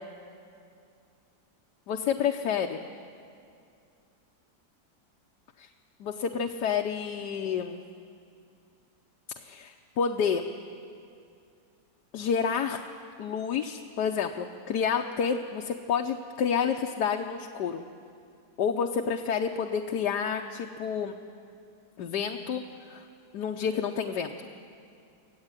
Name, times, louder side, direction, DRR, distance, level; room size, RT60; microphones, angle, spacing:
voice 1, 1.9-2.8 5.6-5.7 6.0-7.8 9.4-10.5 12.1-12.8 13.2-17.8 18.6-21.1 22.0-23.1 23.3-24.5, left 7 dB, 80° left, 3 dB, 1.4 m, -29 dB
25.0 x 15.5 x 9.1 m, 2.5 s
omnidirectional pair, 1.8 m